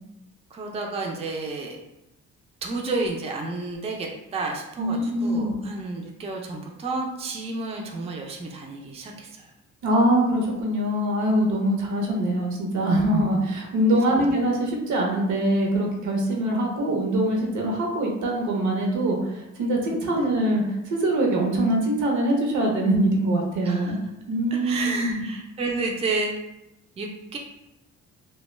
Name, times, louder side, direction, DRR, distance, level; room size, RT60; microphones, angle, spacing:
voice 1, 0.5-1.8 2.6-9.5 14.1-14.3 20.0-20.2 23.6-24.0 24.5-26.3 27.0-27.4, right 3 dB, 20° right, 1 dB, 0.4 m, -31 dB
voice 2, 4.8-5.5 9.8-19.2 19.6-24.0 24.3-25.2, right 1 dB, 75° right, 0 dB, 0.7 m, -23 dB
2.2 x 2.1 x 3.1 m, 0.91 s
cardioid pair, 90°, 30 cm